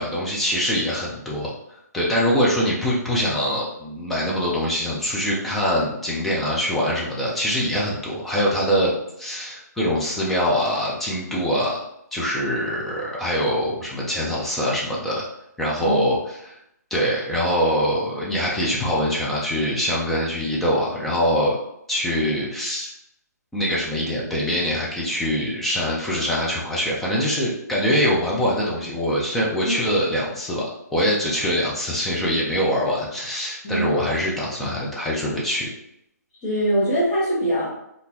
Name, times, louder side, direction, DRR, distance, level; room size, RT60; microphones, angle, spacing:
voice 1, 0.0-8.9 9.2-11.8 12.1-15.3 15.6-16.6 16.9-21.6 21.9-22.9 23.5-30.6 30.9-35.7, equal, ahead, -6 dB, 0.4 m, -23 dB
voice 2, 36.4-37.7, right 1 dB, 20° left, -8 dB, 1.0 m, -23 dB
3.6 x 2.4 x 2.8 m, 0.78 s
hypercardioid pair, 165°, 9 cm